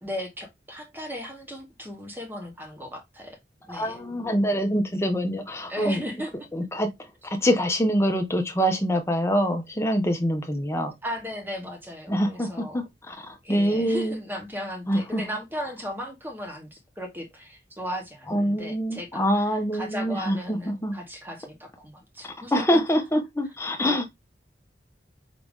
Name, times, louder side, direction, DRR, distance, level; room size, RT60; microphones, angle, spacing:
voice 1, 0.0-3.4 3.7-4.0 5.7-6.3 11.0-12.8 13.4-22.8, equal, 10° right, 1.1 m, -36 dB
voice 2, 3.7-6.0 6.5-6.9 7.2-10.9 12.1-13.2 13.5-14.2 14.9-15.2 18.3-21.0 22.5-24.1, equal, 15° left, 0.8 m, -25 dB
5.0 x 2.9 x 3.5 m
head